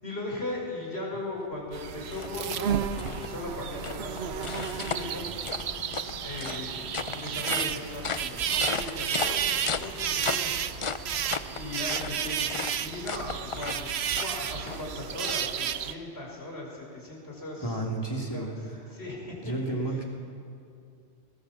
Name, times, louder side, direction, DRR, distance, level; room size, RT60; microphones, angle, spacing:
voice 1, 0.0-5.3 6.2-10.5 10.7-10.9 11.5-17.8 18.3-19.5 19.8-20.0, left 2 dB, 65° left, -1 dB, 5.4 m, -38 dB
sound 1, 1.4-15.9, left 5 dB, 40° left, 0.5 m, -37 dB
sound 2, 1.7-15.9, right 8 dB, 70° right, 1.0 m, -32 dB
voice 2, 17.6-18.5 19.4-20.1, right 2 dB, 20° left, 0 dB, 3.0 m, -31 dB
21.0 x 20.5 x 7.2 m, 2.5 s
omnidirectional pair, 1.2 m